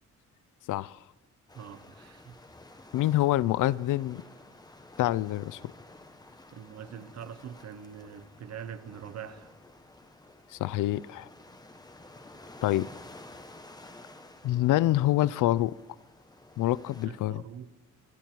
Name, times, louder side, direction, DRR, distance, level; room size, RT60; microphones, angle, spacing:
voice 1, 0.7-1.0 2.9-4.2 5.0-5.6 10.5-11.3 12.6-12.9 14.4-15.7 16.6-17.4, left 15 dB, 85° left, 0.5 m, -26 dB
sound 1, 1.5-17.1, left 2 dB, 15° left, 1.2 m, -52 dB
voice 2, 1.5-2.4 6.5-9.5 17.0-17.8, right 8 dB, 55° right, 1.1 m, -44 dB
27.5 x 11.0 x 4.5 m
cardioid pair, 125°, 30 cm